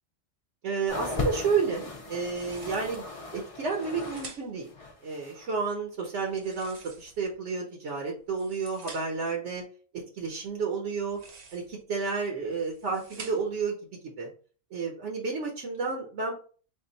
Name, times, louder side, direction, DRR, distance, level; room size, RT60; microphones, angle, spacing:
voice 1, 0.6-4.7 5.0-9.6 10.1-11.2 11.5-13.8 14.2-14.3 14.7-16.3, right 5 dB, 75° right, 1 dB, 1.0 m, -31 dB
sound 1, 0.9-4.3 4.6-5.5 6.2-6.3, left 3 dB, 45° left, 0.5 m, -37 dB
sound 2, 2.2-3.1 3.7-4.7 6.3-7.4 8.2-9.3 11.0-11.8 12.4-13.7, right 4 dB, 50° right, 0.5 m, -48 dB
3.7 x 2.2 x 3.8 m, 0.41 s
omnidirectional pair, 1.2 m